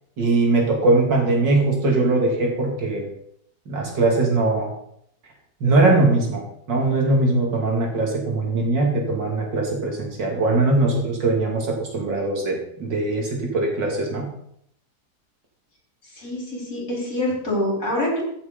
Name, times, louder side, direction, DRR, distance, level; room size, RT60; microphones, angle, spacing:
voice 1, 0.2-3.1 3.7-4.7 5.6-6.4 6.7-14.3, right 2 dB, 80° right, 0 dB, 3.1 m, -21 dB
voice 2, 16.0-18.2, left 1 dB, 50° left, -4 dB, 4.4 m, -26 dB
14.0 x 8.2 x 3.9 m, 0.71 s
omnidirectional pair, 1.9 m